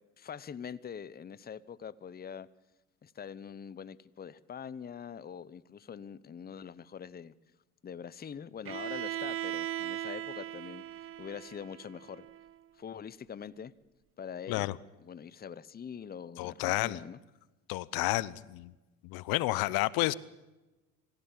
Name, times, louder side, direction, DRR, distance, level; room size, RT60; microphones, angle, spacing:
voice 1, 0.2-2.5 3.0-7.3 7.8-10.8 11.2-12.3 12.7-13.7 14.2-14.7 15.0-17.2, left 7 dB, 25° left, 0.9 m, -44 dB
Bowed string instrument, 8.6-12.5, right 11 dB, 35° right, 0.7 m, -38 dB
voice 2, 16.4-17.0 17.7-18.7 19.0-20.1, left 19 dB, 65° left, 0.9 m, -30 dB
25.5 x 16.0 x 7.5 m
supercardioid pair, 85°, 39 cm